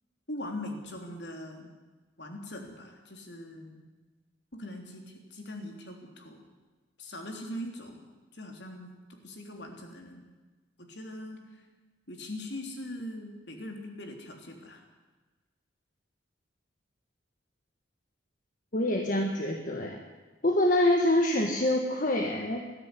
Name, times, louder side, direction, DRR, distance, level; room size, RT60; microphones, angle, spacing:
voice 1, 0.3-1.7 2.2-3.8 4.5-6.4 7.0-8.0 8.3-8.9 9.2-10.2 10.8-11.6 12.1-14.8, left 1 dB, 60° left, 3 dB, 3.5 m, -41 dB
voice 2, 18.7-20.0 20.4-22.6, left 1 dB, 45° left, 3 dB, 1.6 m, -26 dB
19.5 x 14.0 x 10.0 m, 1.3 s
head